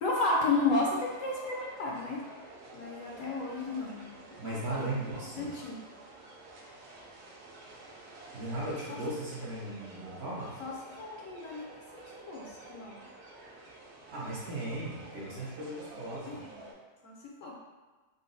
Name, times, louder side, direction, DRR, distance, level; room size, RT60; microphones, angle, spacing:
voice 1, 0.0-2.2 2.7-4.1 4.4-5.0 5.4-5.8 10.6-10.7 11.0-11.7 11.9-13.0 16.2-16.6 17.0-17.1 17.4-17.6, left 3 dB, 70° left, -2 dB, 0.9 m, -32 dB
sound 1, 0.5-16.7, right 2 dB, 80° right, 1.2 m, -50 dB
voice 2, 4.4-5.5 8.3-10.6 14.1-16.4, right 1 dB, 55° right, -7 dB, 0.8 m, -37 dB
3.9 x 2.1 x 3.8 m, 1.3 s
omnidirectional pair, 1.6 m